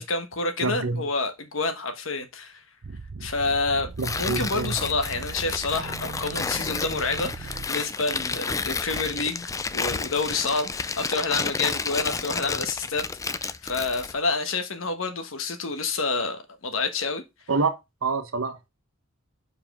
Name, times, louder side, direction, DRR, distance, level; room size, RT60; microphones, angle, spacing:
voice 1, 0.0-2.6 3.2-17.2, left 3 dB, 70° left, 1.3 m, -28 dB
voice 2, 0.6-1.1 4.0-4.8 17.5-17.7 18.0-18.7, right 3 dB, 85° right, 1.2 m, -26 dB
sound 1, 2.8-8.1, right 4 dB, 65° right, 0.6 m, -39 dB
Tearing, 4.0-14.2, left 4 dB, 15° left, 0.3 m, -31 dB
5.0 x 4.9 x 6.0 m
head